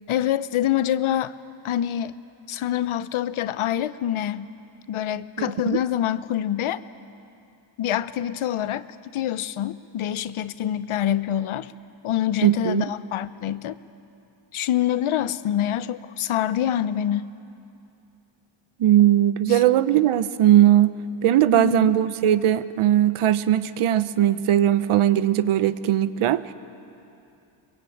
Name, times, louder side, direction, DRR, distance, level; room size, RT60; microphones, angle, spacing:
voice 1, 0.1-1.3 1.6-2.2 2.5-4.5 4.9-6.8 7.8-8.8 9.1-11.7 12.0-13.8 14.5-17.3 19.5-19.6 21.5-22.0, left 11 dB, 80° left, 14 dB, 0.9 m, -26 dB
voice 2, 5.4-5.8 12.4-12.9 18.8-20.9 21.2-26.4, right 12 dB, 85° right, 13 dB, 0.9 m, -19 dB
23.5 x 22.0 x 8.7 m, 2.7 s
cardioid pair, 100°, 49 cm